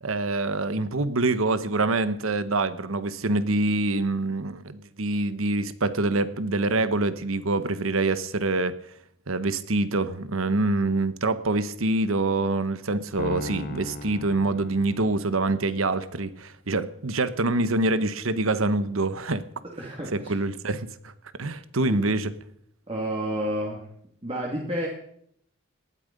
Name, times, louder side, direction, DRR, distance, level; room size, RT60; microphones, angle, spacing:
voice 1, 0.0-8.7 9.3-19.4 20.1-21.1 21.4-22.3, right 2 dB, 90° right, 13 dB, 1.2 m, -25 dB
Piano, 13.2-15.6, left 1 dB, 45° left, 0.9 m, -37 dB
voice 2, 19.8-20.3 21.9-22.0 22.9-23.9 24.2-24.9, equal, 30° right, -2 dB, 2.5 m, -30 dB
19.0 x 12.5 x 5.4 m, 0.70 s
head